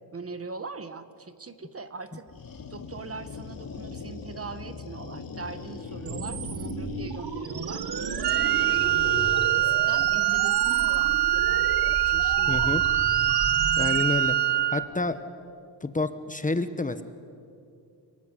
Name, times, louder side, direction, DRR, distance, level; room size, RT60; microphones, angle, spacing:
voice 1, 0.1-2.3 2.7-7.8 8.2-12.7, right 4 dB, 35° right, 11 dB, 1.4 m, -41 dB
sound 1, 2.3-9.4, left 5 dB, 55° left, 3.0 m, -39 dB
sound 2, 6.1-14.0, right 6 dB, 60° right, 1.5 m, -34 dB
Wind instrument woodwind instrument, 8.2-14.9, right 14 dB, 75° right, 0.8 m, -23 dB
voice 2, 12.5-12.8 13.8-14.4 14.7-15.2 15.8-17.0, left 3 dB, 20° left, 10 dB, 1.2 m, -28 dB
29.5 x 19.5 x 9.9 m, 2.4 s
wide cardioid pair, 130°, 42 cm